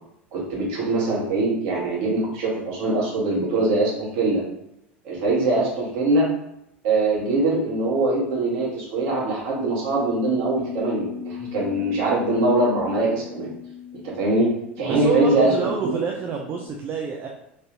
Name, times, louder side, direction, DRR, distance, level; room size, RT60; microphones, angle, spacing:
voice 1, 0.3-4.4 5.0-6.3 6.8-13.5 14.0-16.0, right 2 dB, 55° right, -4 dB, 1.3 m, -22 dB
Bass guitar, 10.5-16.7, left 8 dB, 30° left, 1.2 m, -39 dB
voice 2, 14.8-17.3, right 6 dB, 35° right, 0 dB, 0.4 m, -27 dB
3.4 x 2.6 x 2.6 m, 0.80 s
figure-of-eight pair, 75°, 6 cm